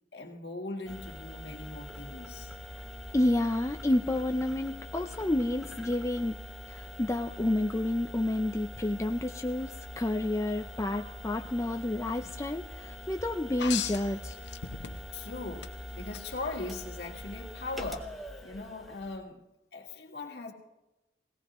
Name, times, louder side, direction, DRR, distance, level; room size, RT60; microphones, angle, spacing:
voice 1, 0.1-2.5 9.6-9.7 15.1-15.7 16.0-19.4 19.7-20.5, left 3 dB, 65° left, 2 dB, 1.6 m, -40 dB
sound 1, 0.8-19.2, left 1 dB, ahead, 1.0 m, -44 dB
voice 2, 3.1-6.4 6.7-14.3, left 1 dB, 15° left, 4 dB, 0.4 m, -30 dB
sound 2, 13.6-15.2 15.6-16.2 17.8-17.9, left 9 dB, 85° left, 0.8 m, -36 dB
18.5 x 18.0 x 3.0 m, 0.99 s
head